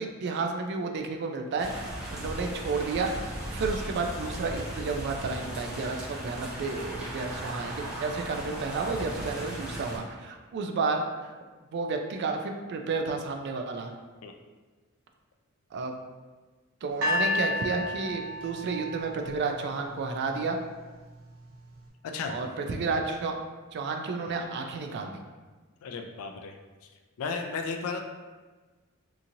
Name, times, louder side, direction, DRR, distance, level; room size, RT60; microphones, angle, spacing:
voice 1, 0.0-11.3 11.7-13.9 15.7-15.9 16.8-20.6 22.3-23.3 23.7-25.2, right 4 dB, 50° right, 4 dB, 0.3 m, -31 dB
sound 1, 1.6-10.0, right 1 dB, 5° right, 0.6 m, -37 dB
sound 2, 17.0-20.2 21.0-21.1, left 2 dB, 75° right, 0.7 m, -31 dB
voice 2, 25.8-26.6 27.2-28.0, left 4 dB, 70° left, 4 dB, 0.3 m, -34 dB
2.9 x 2.5 x 2.6 m, 1.3 s
head